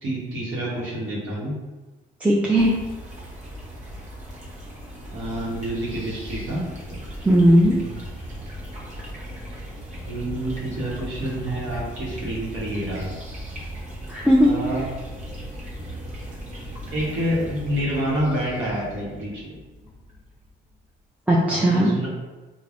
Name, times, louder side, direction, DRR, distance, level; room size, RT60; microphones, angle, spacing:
voice 1, 0.0-1.6 5.1-6.6 6.9-7.0 10.0-13.2 14.5-14.9 16.9-19.6 21.5-22.1, right 1 dB, 85° right, -5 dB, 0.8 m, -28 dB
voice 2, 2.2-2.7 7.2-7.8 14.1-14.5 21.3-21.9, equal, 5° right, -5 dB, 0.4 m, -17 dB
sound 1, 2.6-20.7, equal, 35° right, 0.9 m, -37 dB
3.3 x 2.0 x 2.4 m, 1.2 s
cardioid pair, 90°, 20 cm